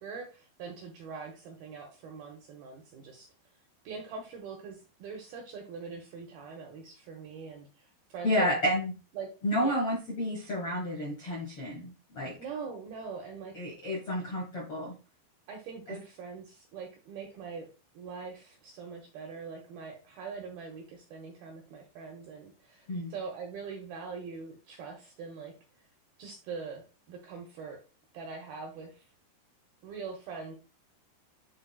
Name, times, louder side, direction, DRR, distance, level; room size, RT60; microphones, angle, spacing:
voice 1, 0.0-3.3 3.8-8.6 9.1-9.3 9.6-9.8 12.4-13.5 15.5-17.7 17.9-25.5 26.2-27.8 28.1-29.1 29.8-30.6, right 5 dB, 75° right, 2 dB, 2.2 m, -42 dB
voice 2, 8.2-8.9 9.4-12.4 13.5-14.9 15.9-16.0 22.9-23.1, equal, 65° left, -4 dB, 1.3 m, -30 dB
10.5 x 4.1 x 2.3 m, 0.34 s
omnidirectional pair, 5.3 m